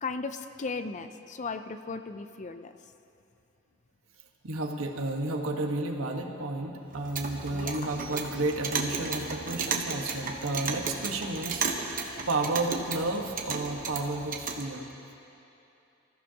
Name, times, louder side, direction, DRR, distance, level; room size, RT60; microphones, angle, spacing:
voice 1, 0.0-2.7 7.5-7.9, left 4 dB, 35° left, 10 dB, 0.5 m, -36 dB
voice 2, 4.4-14.9, right 2 dB, 90° right, 2 dB, 1.4 m, -32 dB
Clock, 6.9-14.6, right 5 dB, 40° right, 1.1 m, -34 dB
25.5 x 14.5 x 2.9 m, 2.8 s
head